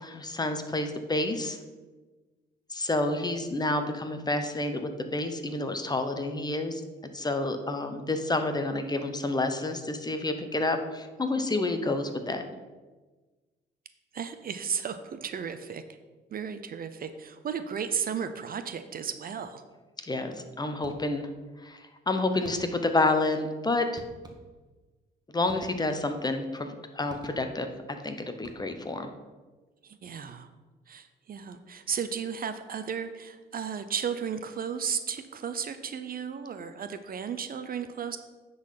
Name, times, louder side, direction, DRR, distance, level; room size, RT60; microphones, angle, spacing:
voice 1, 0.0-1.6 2.7-6.8 7.1-12.4 20.1-21.3 21.6-24.0 25.3-27.7 28.0-29.1, left 2 dB, 20° left, 7 dB, 0.9 m, -29 dB
voice 2, 14.1-16.0 16.3-19.6 29.8-30.5 30.9-38.2, right 7 dB, 45° right, 10 dB, 0.6 m, -34 dB
sound 1, 20.8-21.4 22.4-23.0 24.0-24.8 25.5-26.2 27.1-27.8 28.3-29.0, right 1 dB, 20° right, 1.2 m, -49 dB
9.5 x 4.1 x 5.7 m, 1.3 s
cardioid pair, 90°, 20 cm